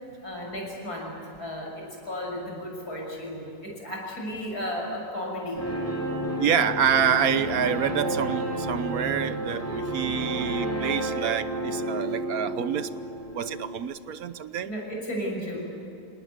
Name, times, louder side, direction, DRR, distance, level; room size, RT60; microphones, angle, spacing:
voice 1, 0.2-5.6 14.6-15.8, equal, 75° left, -1 dB, 7.2 m, -34 dB
sound 1, 5.6-13.8, right 1 dB, 10° left, 5.6 m, -31 dB
voice 2, 6.4-12.9 13.3-14.7, right 8 dB, 70° right, 13 dB, 1.3 m, -27 dB
27.5 x 19.0 x 9.5 m, 2.8 s
omnidirectional pair, 1.6 m